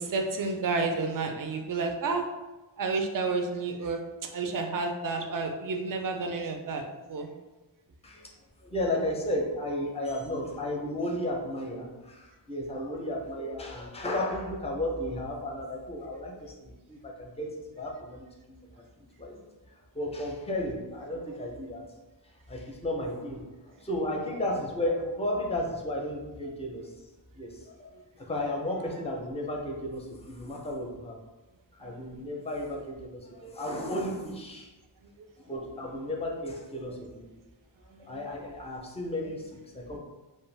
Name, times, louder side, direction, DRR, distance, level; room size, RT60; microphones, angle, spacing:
voice 1, 0.0-2.3 2.8-4.0 4.3-7.3 31.8-31.9 35.8-35.9 37.9-38.2 39.2-39.5, right 4 dB, 45° right, 4 dB, 0.4 m, -31 dB
voice 2, 8.6-21.8 22.5-27.0 27.3-31.2 31.8-34.7 35.4-37.3 38.0-40.0, left 1 dB, 15° left, 0 dB, 0.5 m, -34 dB
2.5 x 2.2 x 3.2 m, 1.1 s
wide cardioid pair, 40°, 45 cm